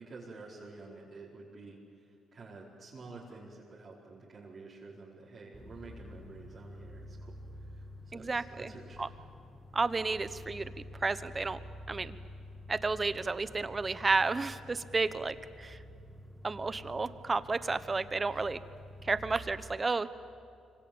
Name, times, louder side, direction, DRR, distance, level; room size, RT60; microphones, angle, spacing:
voice 1, 0.0-9.1, right 3 dB, 45° right, -6 dB, 4.7 m, -50 dB
sound 1, 5.5-19.5, left 1 dB, 5° right, 2.6 m, -49 dB
voice 2, 8.1-8.7 9.0-9.1 9.7-10.7 11.0-11.6 11.9-12.2 12.7-15.8 16.4-18.6 19.0-20.1, right 3 dB, 25° right, 14 dB, 1.1 m, -32 dB
25.5 x 23.5 x 8.9 m, 2.5 s
cardioid pair, 90°, 0 cm